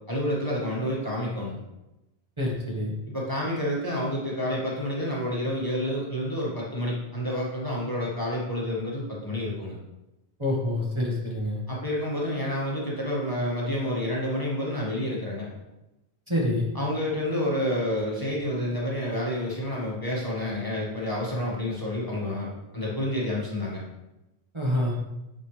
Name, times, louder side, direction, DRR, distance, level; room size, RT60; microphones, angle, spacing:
voice 1, 0.1-1.6 3.1-9.8 11.7-15.5 16.7-22.5 22.7-23.8, left 1 dB, 20° left, -6 dB, 1.7 m, -29 dB
voice 2, 2.4-2.9 10.4-11.6 16.3-16.7 24.5-25.0, left 1 dB, 25° right, -5 dB, 1.5 m, -27 dB
9.0 x 5.2 x 3.3 m, 0.98 s
omnidirectional pair, 1.1 m